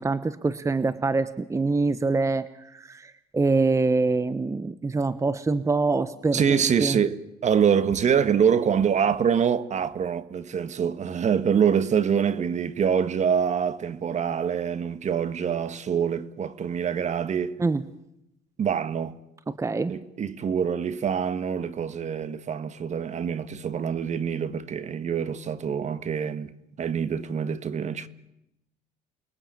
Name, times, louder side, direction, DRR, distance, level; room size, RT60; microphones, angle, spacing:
voice 1, 0.0-2.5 2.7-7.0 17.6-17.8 19.5-19.9, right 3 dB, 15° right, 1.0 m, -25 dB
voice 2, 6.3-17.6 18.6-19.2 19.9-26.5 26.8-28.1, right 7 dB, 45° right, 1.5 m, -25 dB
29.0 x 21.5 x 8.9 m
cardioid pair, 110°, 17 cm